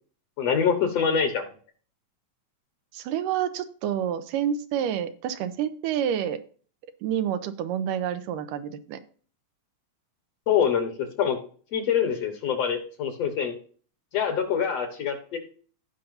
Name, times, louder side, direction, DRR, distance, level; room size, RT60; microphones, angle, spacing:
voice 1, 0.4-1.4 10.5-10.9 11.2-11.4 11.7-13.5 14.1-15.4, left 7 dB, 60° left, 6 dB, 2.1 m, -25 dB
voice 2, 2.9-6.4 7.0-9.0, right 9 dB, 85° right, 11 dB, 2.3 m, -28 dB
16.5 x 5.6 x 2.7 m, 0.43 s
omnidirectional pair, 3.8 m